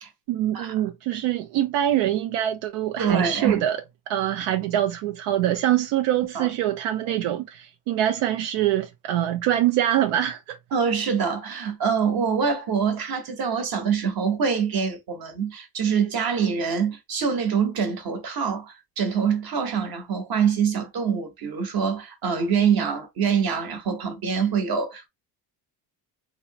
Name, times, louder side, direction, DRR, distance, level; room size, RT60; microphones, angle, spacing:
voice 1, 0.3-3.8 4.1-10.6, right 12 dB, 80° right, 0.6 m, -24 dB
voice 2, 3.0-3.6 6.3-6.5 10.7-25.1, right 6 dB, 50° right, 1.1 m, -25 dB
3.0 x 2.0 x 2.8 m
cardioid pair, 115°, 48 cm